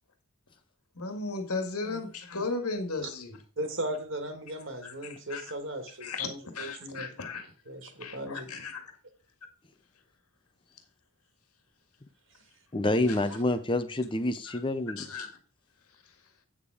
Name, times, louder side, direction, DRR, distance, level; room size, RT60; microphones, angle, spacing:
voice 1, 1.0-3.4 4.8-5.4 6.0-7.5 8.0-8.9 13.1-13.2 14.5-14.6 15.0-15.3, left 3 dB, 85° left, 6 dB, 1.9 m, -36 dB
voice 2, 3.6-7.2 7.7-8.7, right 1 dB, 60° right, 7 dB, 1.9 m, -37 dB
voice 3, 12.7-15.1, left 1 dB, 20° left, 11 dB, 0.6 m, -28 dB
8.7 x 7.1 x 4.9 m, 0.39 s
head